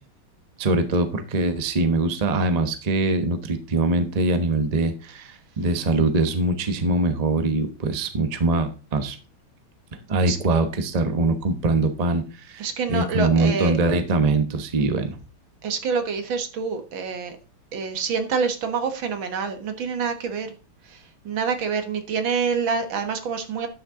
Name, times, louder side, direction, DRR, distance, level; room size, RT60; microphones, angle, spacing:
voice 1, 0.6-9.2 10.1-15.1, right 2 dB, 35° right, 8 dB, 0.6 m, -23 dB
voice 2, 12.6-13.7 15.6-17.3 17.7-20.5 20.9-21.0 21.3-23.7, right 5 dB, 65° right, 7 dB, 2.1 m, -26 dB
11.0 x 6.5 x 3.7 m, 0.33 s
omnidirectional pair, 2.4 m